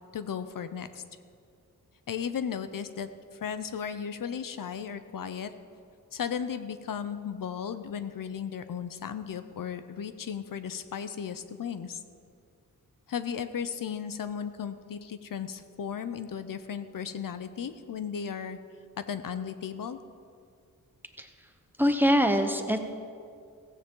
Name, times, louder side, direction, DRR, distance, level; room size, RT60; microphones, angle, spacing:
voice 1, 0.1-1.0 2.1-5.5 6.1-12.0 13.1-18.6 19.0-20.0, left 7 dB, 70° left, 11 dB, 0.7 m, -35 dB
voice 2, 21.8-22.8, equal, 5° right, 6 dB, 0.9 m, -23 dB
16.0 x 15.5 x 3.8 m, 2.3 s
wide cardioid pair, 145°, 34 cm